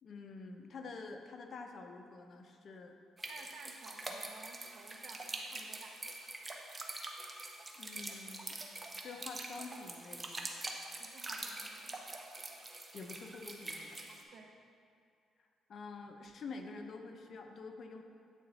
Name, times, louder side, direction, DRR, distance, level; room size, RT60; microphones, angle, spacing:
voice 1, 0.0-3.0 4.1-4.2 7.8-8.6 9.0-10.5 12.9-14.0 15.7-18.0, left 4 dB, 55° left, 4 dB, 0.6 m, -48 dB
sound 1, 3.2-14.2, right 2 dB, 25° right, 0.7 m, -45 dB
voice 2, 3.2-6.0 11.0-12.2 14.3-14.6, right 4 dB, 65° right, 3 dB, 0.7 m, -55 dB
8.2 x 3.8 x 4.1 m, 2.4 s
cardioid pair, 90°, 0 cm